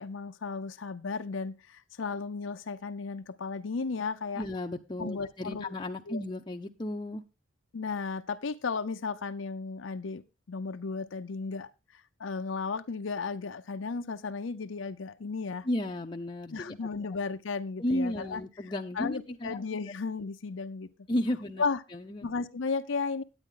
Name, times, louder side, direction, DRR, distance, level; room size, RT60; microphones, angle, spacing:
voice 1, 0.0-4.4 5.0-5.7 6.1-6.2 7.7-10.2 10.5-15.7 16.5-18.4 19.0-20.9 21.6-21.8 22.2-23.2, left 4 dB, 90° left, 0.6 m, -34 dB
voice 2, 4.4-7.2 15.6-16.9 17.8-19.6 21.1-21.6 21.9-22.3, left 1 dB, 25° left, 0.6 m, -33 dB
9.7 x 9.0 x 3.7 m
head